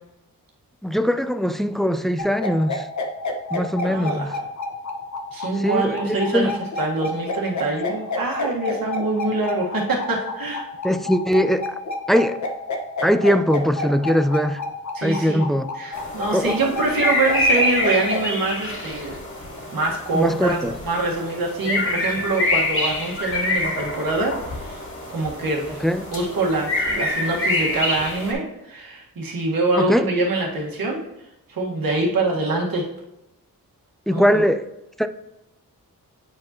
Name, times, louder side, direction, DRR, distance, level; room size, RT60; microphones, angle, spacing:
voice 1, 0.8-2.9 3.5-4.3 5.6-6.5 10.8-11.7 12.1-12.4 13.0-14.6 15.0-15.7 16.3-16.6 20.1-20.7 21.7-21.8 25.8-26.1 29.8-30.1 34.1-34.6 35.0-35.1, equal, ahead, 10 dB, 0.3 m, -21 dB
sound 1, 2.2-18.2, left 3 dB, 50° left, 1.0 m, -29 dB
voice 2, 3.8-4.3 5.3-10.6 14.9-15.5 15.7-19.1 19.7-24.8 25.1-25.8 26.1-31.0 31.5-32.9 34.1-34.4, right 2 dB, 70° right, -1 dB, 1.7 m, -24 dB
sound 2, 15.9-28.3, left 1 dB, 35° left, 2.3 m, -26 dB
8.5 x 4.7 x 3.0 m, 0.92 s
wide cardioid pair, 80°, 36 cm